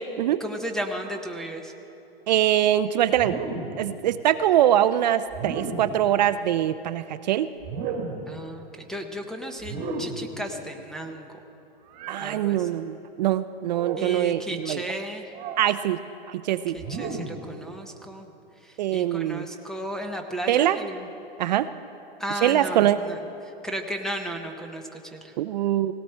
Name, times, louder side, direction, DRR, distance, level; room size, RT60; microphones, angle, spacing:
voice 1, 0.2-1.7 8.3-11.3 12.2-12.7 14.0-15.3 16.7-18.3 18.9-21.1 22.2-23.2 23.6-25.3, right 1 dB, ahead, 4 dB, 0.5 m, -34 dB
voice 2, 2.3-3.4 3.8-7.5 12.1-14.8 15.6-16.0 16.3-16.7 18.8-19.5 20.5-20.8 21.4-21.7 22.4-23.0 25.4-25.9, right 12 dB, 45° right, 12 dB, 0.4 m, -23 dB
sound 1, 3.2-3.9 5.3-6.0 7.6-8.3 9.6-10.3 11.9-12.3 13.7-14.2 15.3-15.7 16.8-17.5, right 4 dB, 25° right, 1.3 m, -33 dB
18.5 x 17.0 x 4.3 m, 2.9 s
hypercardioid pair, 155°, 30 cm